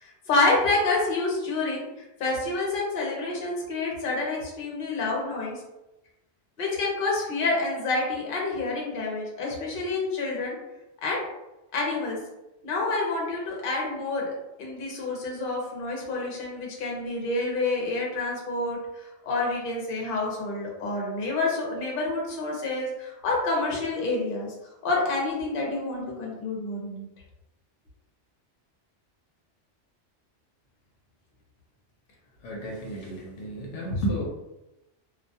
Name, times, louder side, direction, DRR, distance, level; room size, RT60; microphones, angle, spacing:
voice 1, 0.0-1.9 2.2-5.6 6.6-10.6 11.0-11.2 11.7-12.2 12.6-14.3 14.6-24.5 24.8-27.0, left 3 dB, 55° left, -2 dB, 0.8 m, -28 dB
voice 2, 32.4-34.2, equal, 80° left, -1 dB, 0.9 m, -31 dB
2.4 x 2.2 x 2.7 m, 0.95 s
omnidirectional pair, 1.2 m